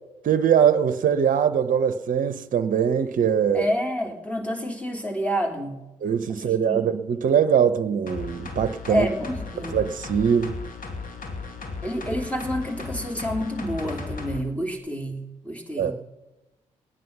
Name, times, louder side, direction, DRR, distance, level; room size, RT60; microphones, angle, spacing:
voice 1, 0.2-3.7 6.0-9.1 9.7-10.5 15.8-15.9, right 8 dB, 55° right, 0.8 m, -22 dB
voice 2, 3.5-5.8 6.4-6.9 8.9-9.8 11.8-15.9, equal, 10° left, 3.2 m, -28 dB
sound 1, 8.1-14.4 14.8-14.9, left 4 dB, 55° left, 2.2 m, -35 dB
18.5 x 9.4 x 6.0 m
hypercardioid pair, 45°, 16 cm